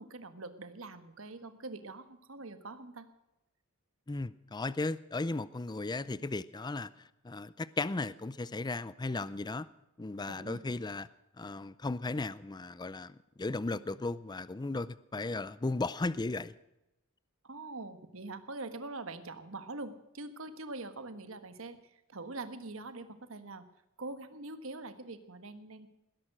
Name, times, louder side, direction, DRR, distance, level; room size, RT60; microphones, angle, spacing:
voice 1, 0.0-3.1 10.3-10.6 17.4-23.6 24.0-25.9, right 2 dB, 65° right, 10 dB, 1.5 m, -44 dB
voice 2, 4.1-9.7 10.0-11.1 11.4-16.5, left 2 dB, 20° left, 17 dB, 0.5 m, -36 dB
20.0 x 11.0 x 6.2 m, 0.92 s
head